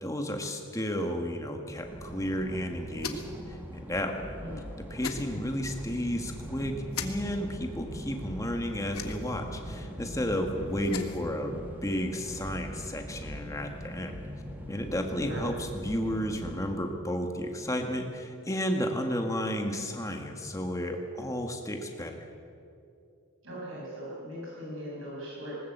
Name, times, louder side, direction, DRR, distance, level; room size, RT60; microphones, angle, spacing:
voice 1, 0.0-4.4 4.9-14.2 14.7-22.3, equal, 15° left, 3 dB, 1.8 m, -32 dB
sound 1, 1.8-16.8, equal, 10° right, 1.9 m, -41 dB
sound 2, 3.0-3.4 5.0-5.2 6.9-7.1 8.9-9.4 10.7-11.2, left 6 dB, 80° left, 1.6 m, -37 dB
voice 2, 23.4-25.6, equal, 65° right, -5 dB, 7.8 m, -39 dB
19.5 x 19.0 x 8.1 m, 2.6 s
head